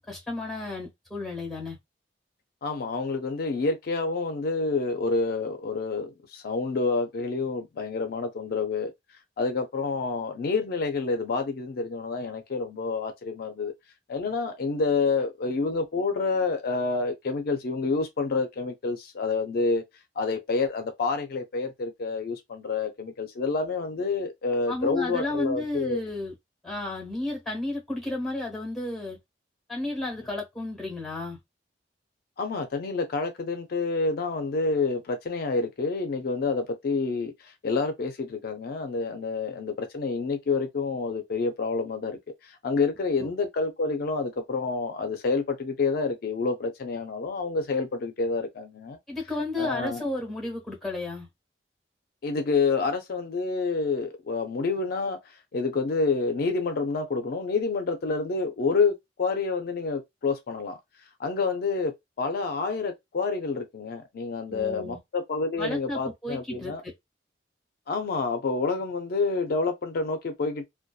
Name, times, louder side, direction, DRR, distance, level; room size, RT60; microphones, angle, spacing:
voice 1, 0.1-1.8 24.7-26.3 26.6-29.2 29.7-31.4 43.2-43.3 49.1-51.3 64.5-65.0 65.6-66.9, left 2 dB, ahead, 1.1 m, -32 dB
voice 2, 2.6-8.9 9.4-13.7 14.1-19.8 20.2-26.0 32.4-49.0 49.6-50.0 52.2-60.8 61.2-61.9 62.2-66.8 67.9-70.6, left 4 dB, 55° left, 0.4 m, -28 dB
2.6 x 2.2 x 2.2 m
head